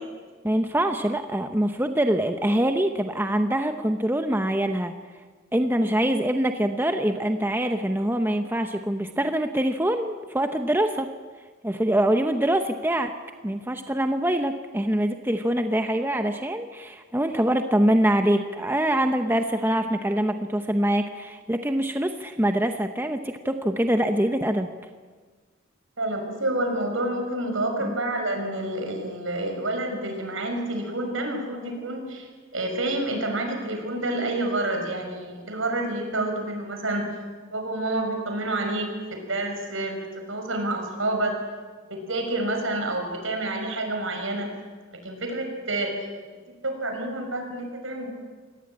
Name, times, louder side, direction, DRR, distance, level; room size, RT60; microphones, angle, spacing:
voice 1, 0.4-4.9 5.5-11.1 11.6-13.1 13.4-24.7 27.8-28.0, right 1 dB, 10° right, 6 dB, 0.9 m, -24 dB
voice 2, 26.0-32.3 32.5-37.0 37.4-41.4 41.9-44.5 44.9-45.9 46.6-48.1, right 1 dB, 70° right, 4 dB, 5.9 m, -28 dB
26.0 x 18.5 x 8.7 m, 1.5 s
head